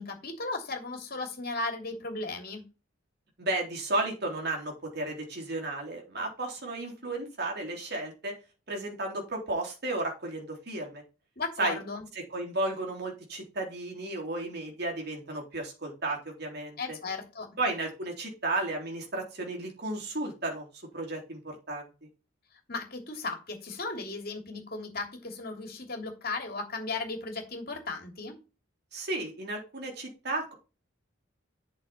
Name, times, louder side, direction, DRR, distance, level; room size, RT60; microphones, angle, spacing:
voice 1, 0.0-2.6 11.4-12.0 16.8-17.5 22.7-28.3, left 3 dB, 50° left, 4 dB, 3.0 m, -36 dB
voice 2, 3.4-8.4 8.7-11.0 11.6-11.8 12.3-17.0 17.6-20.7 20.9-21.9 28.9-30.5, right 2 dB, 55° right, 1 dB, 3.7 m, -33 dB
8.7 x 6.4 x 4.3 m, 0.31 s
head